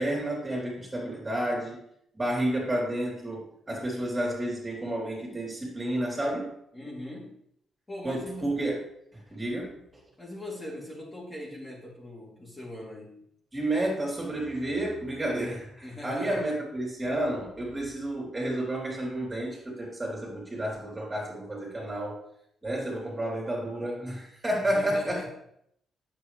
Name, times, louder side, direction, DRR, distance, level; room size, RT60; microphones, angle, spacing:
voice 1, 0.0-1.8 2.2-6.5 8.0-8.8 9.3-9.8 13.5-22.2 22.6-25.3, right 1 dB, 20° right, -3 dB, 3.6 m, -31 dB
voice 2, 6.7-7.4 7.9-8.5 10.2-13.2 15.8-16.5 24.6-25.3, left 1 dB, 20° left, -4 dB, 3.0 m, -40 dB
8.8 x 7.6 x 3.3 m, 0.72 s
cardioid pair, 80°, 0 cm